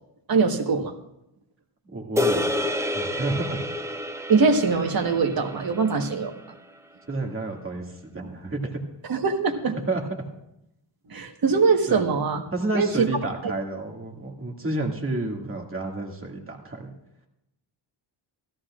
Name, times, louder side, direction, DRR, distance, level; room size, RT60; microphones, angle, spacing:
voice 1, 0.3-0.9 4.3-6.4 9.1-9.8 11.1-12.4 12.7-13.1, right 4 dB, 50° right, 5 dB, 1.5 m, -22 dB
voice 2, 1.9-2.5 2.9-3.6 7.1-8.8 9.9-10.0 11.9-12.0 12.5-16.9, right 2 dB, 25° right, 1 dB, 2.2 m, -30 dB
sound 1, 2.2-6.6, left 1 dB, 5° right, 0.7 m, -29 dB
16.5 x 14.5 x 2.5 m, 0.87 s
cardioid pair, 100°, 47 cm